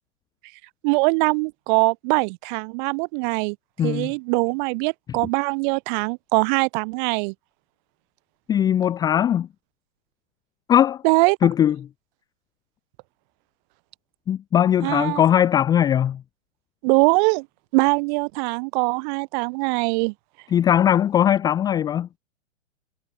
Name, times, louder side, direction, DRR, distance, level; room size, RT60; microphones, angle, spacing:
voice 1, 0.8-3.6 3.8-7.3 11.0-11.4 14.8-15.2 16.8-17.5 17.7-20.1, right 32 dB, 35° right, 4.4 m, -22 dB
voice 2, 3.8-4.1 8.5-9.5 10.7-11.0 11.4-11.9 14.3-16.2 20.5-22.1, left 10 dB, 10° left, 0.6 m, -19 dB
figure-of-eight pair, 120°, 38 cm